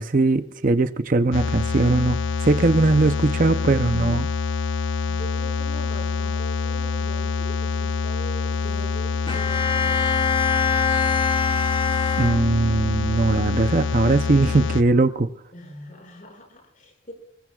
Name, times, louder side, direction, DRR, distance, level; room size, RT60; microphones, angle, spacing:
voice 1, 0.0-2.2 2.4-4.3 12.2-15.3, right 3 dB, 40° right, 10 dB, 0.6 m, -20 dB
sound 1, 1.3-14.8, left 4 dB, 70° left, 0.7 m, -26 dB
voice 2, 5.0-10.2 15.5-17.1, equal, 40° left, 2 dB, 6.1 m, -41 dB
Bowed string instrument, 9.3-12.9, left 6 dB, 25° left, 0.9 m, -24 dB
26.0 x 21.5 x 2.3 m, 0.66 s
head